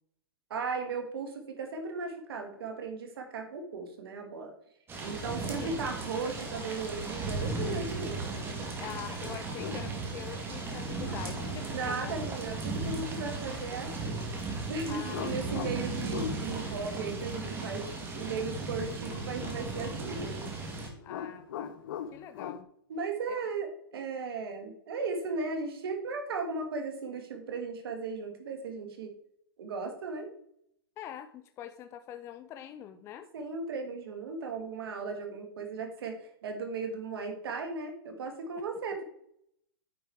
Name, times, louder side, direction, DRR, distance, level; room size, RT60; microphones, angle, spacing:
voice 1, 0.5-4.5 5.0-8.3 11.7-14.2 14.7-20.5 22.9-29.1 29.6-30.3 33.3-39.0, right 4 dB, 70° right, 4 dB, 2.1 m, -36 dB
sound 1, 4.9-20.9, right 3 dB, 15° right, 1.9 m, -36 dB
sound 2, 7.4-7.9 9.4-10.1 11.0-12.1 15.1-16.4 19.1-20.7 20.9-22.6, left 9 dB, 60° left, 0.8 m, -41 dB
voice 2, 8.8-12.2 14.9-15.2 21.0-21.8 22.1-22.7 23.3-23.4 31.0-33.3, left 10 dB, 20° left, 9 dB, 0.4 m, -44 dB
9.2 x 5.0 x 4.8 m, 0.69 s
hypercardioid pair, 140°, 13 cm